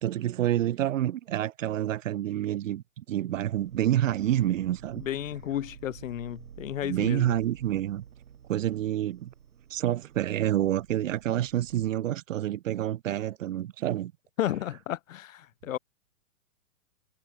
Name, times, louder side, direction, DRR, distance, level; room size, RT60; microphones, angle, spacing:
voice 1, 0.0-5.0 6.8-8.0 8.5-9.3 9.7-14.1, right 12 dB, 60° right, 2.2 m, -28 dB
sound 1, 3.3-11.9, right 8 dB, 75° right, 7.8 m, -50 dB
voice 2, 5.0-7.3 14.4-15.8, left 12 dB, 65° left, 1.4 m, -33 dB
hypercardioid pair, 135°, 42 cm